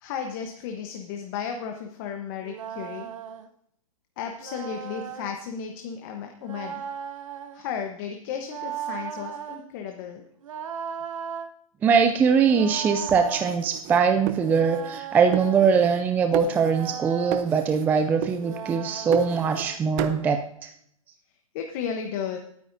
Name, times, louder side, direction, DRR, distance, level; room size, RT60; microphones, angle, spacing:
voice 1, 0.0-3.1 4.2-6.8 7.5-10.2 21.5-22.4, left 7 dB, 40° left, 4 dB, 1.1 m, -34 dB
sound 1, 2.4-3.5 4.4-5.4 6.4-7.6 8.4-9.6 10.4-11.5 12.4-13.5 14.4-15.8 16.4-17.5 18.4-19.8, right 8 dB, 65° right, 1.0 m, -37 dB
voice 2, 11.8-20.7, right 6 dB, 10° right, 7 dB, 0.4 m, -22 dB
sound 2, 13.1-15.0 15.3-16.1 16.3-17.0 17.3-17.9 18.2-19.7 20.0-20.3, right 13 dB, 35° right, 0.8 m, -34 dB
21.0 x 9.2 x 2.7 m, 0.71 s
hypercardioid pair, 140°, 18 cm